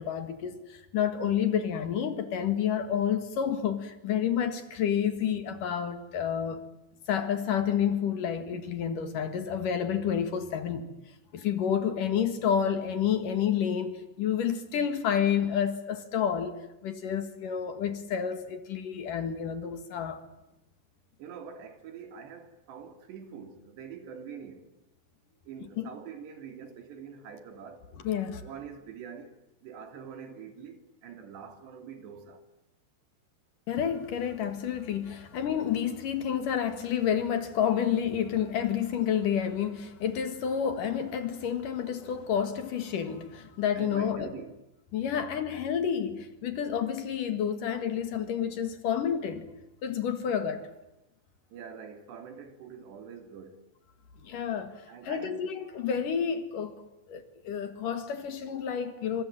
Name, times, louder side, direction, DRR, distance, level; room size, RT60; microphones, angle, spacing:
voice 1, 0.0-6.6 7.1-10.9 11.3-20.2 25.8-25.9 28.0-28.4 33.7-44.4 44.9-49.5 49.8-50.7 54.2-56.8 57.1-59.2, left 8 dB, 60° left, 3.1 m, -29 dB
voice 2, 21.2-24.7 25.4-27.9 28.4-29.3 29.6-32.4 35.1-35.2 43.8-44.6 51.5-53.7 54.9-55.4, right 7 dB, 80° right, 4.8 m, -45 dB
27.0 x 25.0 x 8.8 m
omnidirectional pair, 4.8 m